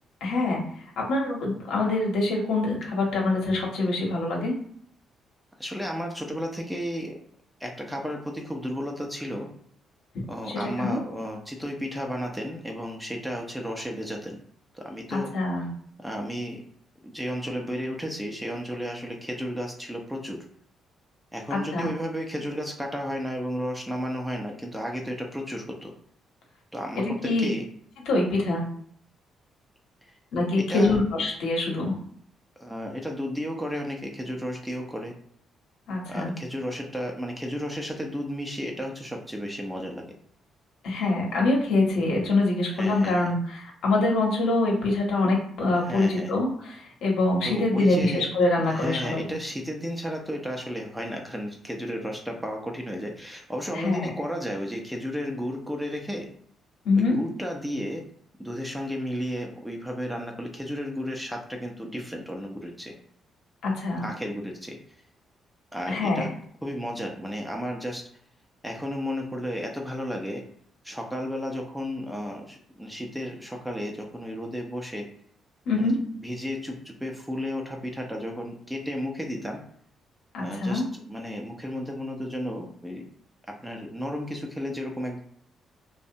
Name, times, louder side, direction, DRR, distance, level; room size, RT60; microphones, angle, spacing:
voice 1, 0.2-0.6 1.0-4.5 10.5-11.0 15.1-15.7 21.5-21.9 27.0-27.5 28.1-28.6 30.3-31.9 35.9-36.3 40.8-49.3 53.7-54.1 56.8-57.1 63.6-64.1 65.9-66.3 75.7-75.9 80.3-80.8, left 2 dB, 80° left, -1 dB, 0.8 m, -25 dB
voice 2, 5.6-7.2 7.6-9.5 10.3-14.4 14.7-15.3 16.0-16.6 17.0-20.4 21.3-25.9 26.7-27.6 30.0-30.1 30.6-31.0 32.6-35.1 36.1-40.0 42.7-43.3 45.8-46.3 47.4-48.3 48.6-56.3 57.0-58.0 58.4-63.0 64.0-64.8 65.7-66.3 66.6-68.0 68.6-70.4 70.8-75.1 75.8-75.9 76.2-79.6 80.4-80.8 81.1-83.0 83.6-85.2, equal, 5° right, 1 dB, 0.5 m, -33 dB
2.6 x 2.1 x 2.6 m, 0.63 s
cardioid pair, 90°, 0 cm